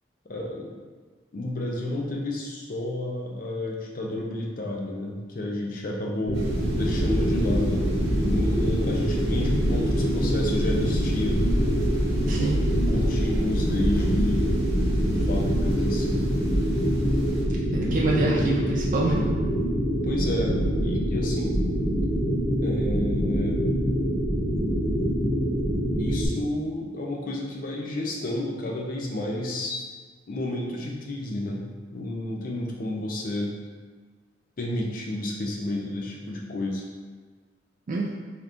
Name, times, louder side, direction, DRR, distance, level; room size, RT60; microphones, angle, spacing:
voice 1, 0.3-0.7 1.3-11.4 12.9-14.6 15.1-16.3 17.8-18.8 19.9-21.5 22.6-23.6 26.0-29.8 30.3-33.6 34.6-36.9, left 1 dB, 45° left, -1 dB, 0.5 m, -31 dB
sound 1, 6.3-26.3, equal, 85° left, 1.5 m, -25 dB
sound 2, 6.3-17.4, equal, 80° right, 1.0 m, -29 dB
voice 2, 12.3-12.6 17.7-19.2 37.9-38.1, right 3 dB, 45° right, -3 dB, 0.3 m, -26 dB
3.4 x 2.9 x 2.5 m, 1.5 s
head